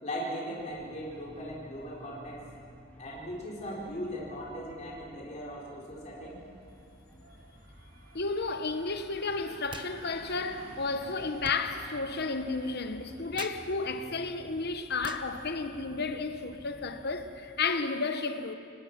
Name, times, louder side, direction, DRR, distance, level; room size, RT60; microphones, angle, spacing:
voice 1, 0.0-2.5 3.0-6.4, equal, 35° left, 4.2 m, -38 dB
sound 1, 0.6-17.3, equal, 10° left, 2.0 m, -54 dB
sound 2, 5.9-15.7, right 1 dB, 70° right, 3.4 m, -54 dB
voice 2, 8.1-18.6, left 4 dB, 50° left, 1.0 m, -32 dB
sound 3, 9.6-9.9 10.2-16.4, right 4 dB, 25° right, 0.7 m, -49 dB
28.5 x 19.0 x 6.0 m
head